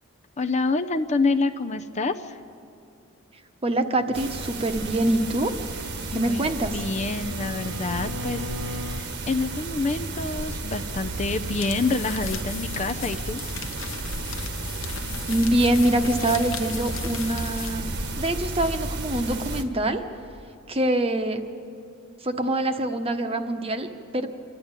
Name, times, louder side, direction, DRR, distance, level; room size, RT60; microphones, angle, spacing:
voice 1, 0.4-2.4 6.1-6.5 6.7-13.4, left 3 dB, 35° left, 7 dB, 0.6 m, -27 dB
voice 2, 3.6-5.5 6.1-6.7 15.3-20.0 20.7-21.5 22.2-24.3, right 1 dB, 25° right, 7 dB, 1.1 m, -25 dB
sound 1, 4.1-19.6, right 2 dB, 55° right, 1.4 m, -33 dB
Bowed string instrument, 6.0-9.1, left 1 dB, 75° right, 0.8 m, -38 dB
sound 2, 11.5-17.9, left 9 dB, 65° left, 1.0 m, -38 dB
26.5 x 12.0 x 8.9 m, 2.4 s
head